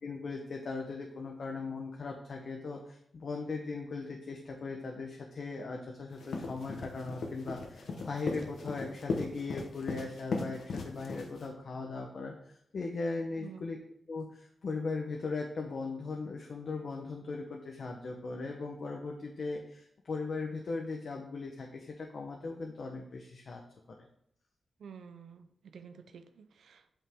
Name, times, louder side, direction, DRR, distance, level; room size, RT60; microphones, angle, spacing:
voice 1, 0.0-13.8 14.1-23.6, left 3 dB, 60° left, 1 dB, 0.9 m, -38 dB
sound 1, 6.1-11.5, left 3 dB, 75° left, 1.2 m, -37 dB
voice 2, 13.4-13.7 24.8-26.9, right 6 dB, 90° right, 9 dB, 0.6 m, -50 dB
8.5 x 5.5 x 3.6 m, 0.69 s
wide cardioid pair, 110°, 0 cm